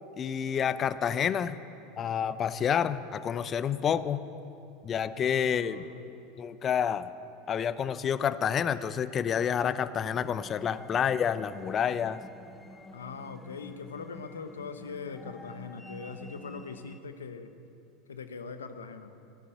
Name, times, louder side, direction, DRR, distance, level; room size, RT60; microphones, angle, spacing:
voice 1, 0.2-1.6 2.0-4.2 4.8-5.9 6.4-7.1 7.5-12.2, left 8 dB, 35° left, 14 dB, 0.7 m, -29 dB
voice 2, 5.1-6.1 12.9-17.5 18.1-19.1, left 5 dB, 85° left, 9 dB, 1.0 m, -41 dB
sound 1, 10.1-17.0, left 1 dB, 5° left, 1.0 m, -50 dB
15.5 x 11.0 x 7.9 m, 2.7 s
hypercardioid pair, 85°, 0 cm